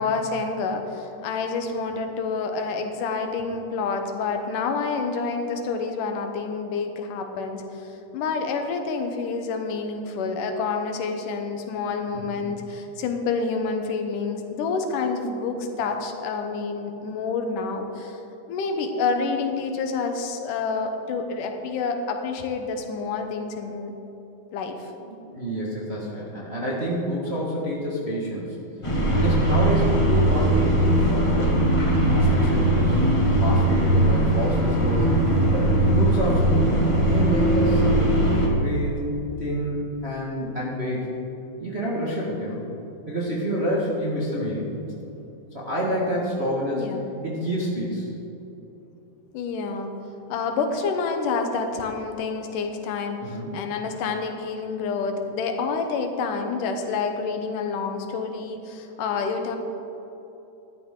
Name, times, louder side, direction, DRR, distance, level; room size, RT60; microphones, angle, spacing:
voice 1, 0.0-18.2 18.5-23.9 24.5-24.9 46.7-47.1 49.3-50.0 50.3-59.6, left 4 dB, 85° left, 5 dB, 2.5 m, -28 dB
voice 2, 12.1-12.4 25.0-28.5 29.2-31.5 32.1-33.0 33.4-35.0 35.5-36.6 37.0-38.1 38.6-39.0 39.4-41.1 41.6-42.6 43.1-44.7 45.5-46.9 47.2-48.1 53.2-53.5, equal, 30° right, -6 dB, 1.2 m, -28 dB
sound 1, 28.8-38.5, right 1 dB, 40° left, 0.4 m, -20 dB
13.5 x 11.5 x 3.7 m, 3.0 s
omnidirectional pair, 3.6 m